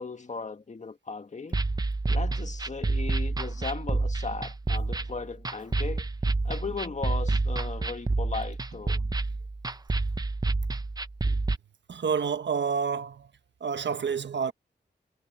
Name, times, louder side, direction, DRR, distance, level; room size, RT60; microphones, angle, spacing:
voice 1, 0.0-1.6 2.1-6.0 6.4-9.0, left 4 dB, 40° left, 1.8 m, -37 dB
sound 1, 1.5-11.6, right 3 dB, 20° right, 0.7 m, -29 dB
voice 2, 11.9-13.3 13.6-14.5, right 6 dB, 85° right, 1.3 m, -29 dB
wide cardioid pair, 120°, 18 cm